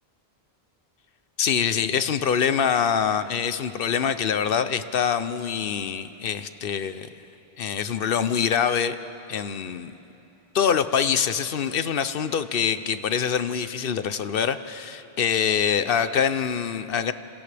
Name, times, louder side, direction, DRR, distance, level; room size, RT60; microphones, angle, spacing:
voice 1, 1.4-7.1 7.6-8.9 9.3-9.9 10.5-17.1, left 7 dB, 65° left, 12 dB, 0.8 m, -24 dB
30.0 x 27.5 x 3.4 m, 3.0 s
omnidirectional pair, 1.0 m